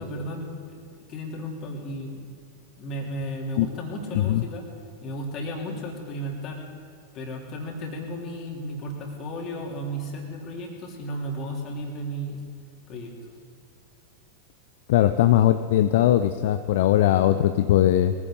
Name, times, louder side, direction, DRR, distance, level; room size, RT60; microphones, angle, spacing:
voice 1, 0.0-2.3 2.8-4.6 5.0-6.6 7.1-12.4 12.9-13.1, equal, 35° left, 0 dB, 3.3 m, -34 dB
voice 2, 14.9-18.1, left 12 dB, 55° left, 10 dB, 0.6 m, -20 dB
22.5 x 15.5 x 3.9 m, 2.2 s
figure-of-eight pair, 90°, 0 cm